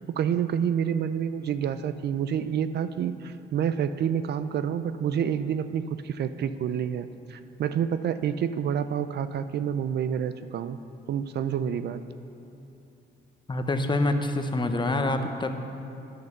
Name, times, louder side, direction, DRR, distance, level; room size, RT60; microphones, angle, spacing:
voice 1, 0.0-10.8 11.1-12.0, right 8 dB, 60° right, 12 dB, 0.4 m, -28 dB
voice 2, 13.5-15.5, left 2 dB, 25° left, 6 dB, 0.8 m, -26 dB
11.0 x 6.6 x 6.6 m, 2.7 s
cardioid pair, 90°, 20 cm